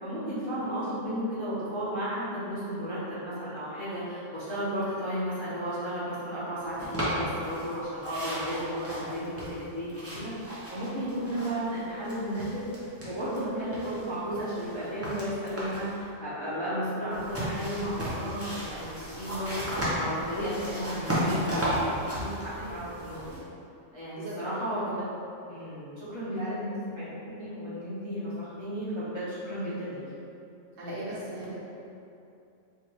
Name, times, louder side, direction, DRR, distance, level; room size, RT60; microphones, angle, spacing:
voice 1, 0.0-10.3 10.7-12.6 13.0-19.7 20.0-23.2 23.9-24.9 25.5-30.0, equal, 30° left, -11 dB, 0.5 m, -33 dB
sound 1, 6.8-7.7 8.0-11.8 12.0-13.4 13.7-15.9 17.1-23.4, equal, 20° right, 0.4 m, -34 dB
voice 2, 24.2-24.5 26.4-26.5 30.8-31.5, right 1 dB, 70° right, -8 dB, 1.3 m, -38 dB
4.6 x 2.2 x 3.1 m, 2.6 s
omnidirectional pair, 1.4 m